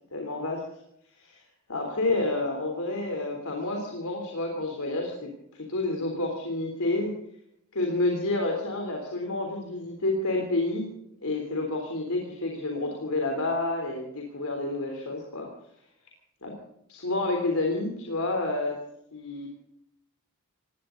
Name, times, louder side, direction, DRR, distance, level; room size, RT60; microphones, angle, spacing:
voice 1, 0.1-0.6 1.2-1.4 1.7-7.1 7.7-10.9 11.2-15.5 16.4-16.5 16.9-18.8 19.1-19.5, left 2 dB, 80° left, 1 dB, 3.6 m, -29 dB
20.0 x 18.0 x 4.0 m, 0.75 s
head